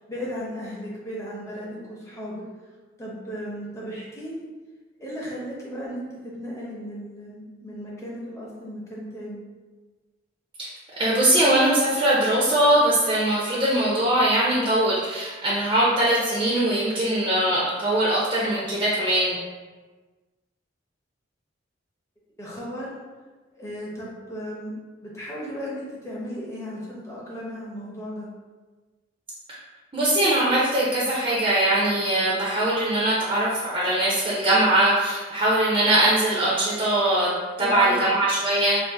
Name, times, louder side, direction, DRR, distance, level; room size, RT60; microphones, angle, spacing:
voice 1, 0.1-2.4 3.0-4.4 5.0-9.4 22.4-23.0 23.5-24.8 25.0-28.3 37.6-38.1, equal, 15° left, -5 dB, 0.7 m, -35 dB
voice 2, 11.0-19.4 29.9-37.3 37.6-38.8, right 1 dB, 25° right, -6 dB, 0.5 m, -21 dB
2.6 x 2.5 x 3.7 m, 1.3 s
head